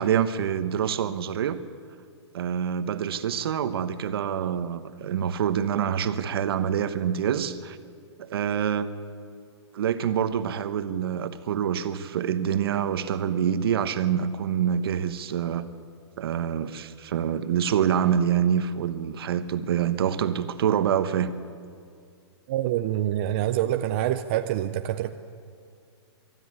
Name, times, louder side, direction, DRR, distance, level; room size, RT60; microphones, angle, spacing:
voice 1, 0.0-1.6 2.3-7.8 8.2-8.9 9.7-15.7 16.2-21.4, right 8 dB, 55° right, 11 dB, 1.0 m, -26 dB
voice 2, 22.5-25.1, right 12 dB, 25° right, 8 dB, 0.4 m, -26 dB
22.0 x 13.0 x 9.7 m, 2.3 s
hypercardioid pair, 165°, 15 cm